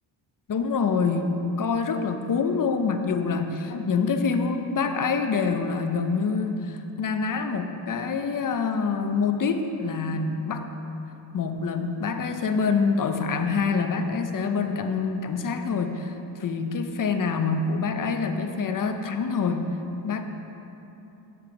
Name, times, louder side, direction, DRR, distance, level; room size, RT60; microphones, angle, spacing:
voice 1, 0.5-10.7 11.3-16.1 16.4-19.8 20.0-20.2, left 5 dB, 45° left, 6 dB, 0.7 m, -26 dB
8.2 x 7.0 x 4.9 m, 3.0 s
cardioid pair, 90°, 47 cm